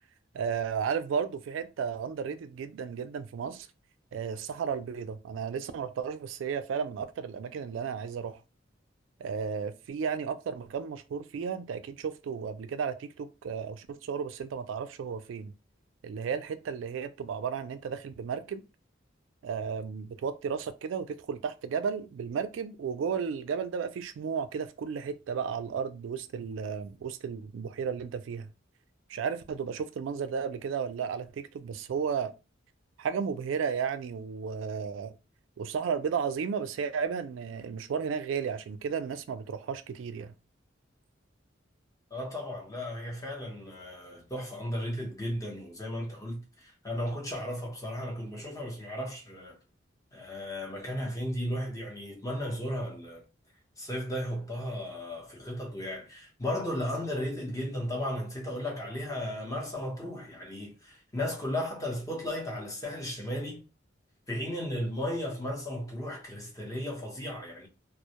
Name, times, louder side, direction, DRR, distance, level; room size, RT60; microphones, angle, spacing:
voice 1, 0.3-3.7 4.1-8.4 9.2-15.5 16.0-18.6 19.4-28.5 29.1-32.3 33.0-35.1 35.6-40.3, right 6 dB, 85° right, 0.3 m, -33 dB
voice 2, 42.1-49.6 50.1-53.2 53.8-63.6 64.3-67.7, left 1 dB, 20° left, 0.7 m, -35 dB
2.1 x 2.0 x 2.8 m
head